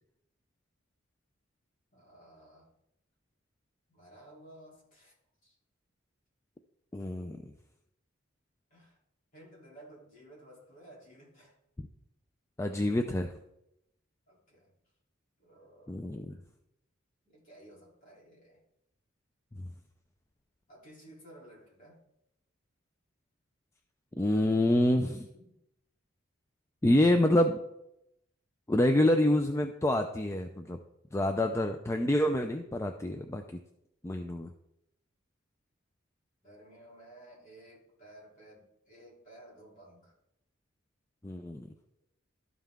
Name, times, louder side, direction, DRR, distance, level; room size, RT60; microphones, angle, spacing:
voice 1, 1.9-2.7 3.9-5.1 5.4-5.5 8.7-9.0 9.3-11.6 14.3-14.7 15.4-16.0 16.2-16.5 17.2-18.6 20.7-22.0 25.3-25.5 36.4-40.1, right 1 dB, 40° left, -5 dB, 3.1 m, -55 dB
voice 2, 6.9-7.4 11.8-11.9 12.6-13.3 15.9-16.4 24.2-25.3 26.8-27.6 28.7-30.8 31.1-33.6 34.0-34.5 41.2-41.7, left 1 dB, 15° left, 5 dB, 0.4 m, -27 dB
12.5 x 5.6 x 3.5 m, 0.83 s
head